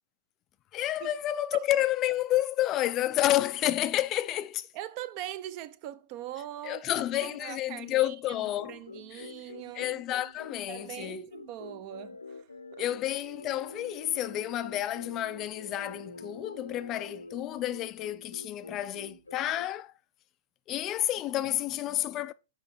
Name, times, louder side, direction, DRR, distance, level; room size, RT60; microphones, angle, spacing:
voice 1, 0.7-4.7 6.6-8.7 9.1-9.3 9.8-11.2 12.8-19.9 20.7-22.3, left 13 dB, 30° left, 0.4 m, -30 dB
voice 2, 4.7-6.9 7.1-9.9 10.7-12.8 21.4-21.6 21.9-22.2, right 13 dB, 40° right, 0.6 m, -42 dB
sound 1, 8.4-19.7, left 2 dB, 85° left, 0.7 m, -46 dB
6.4 x 5.1 x 3.5 m
figure-of-eight pair, 110°, 0 cm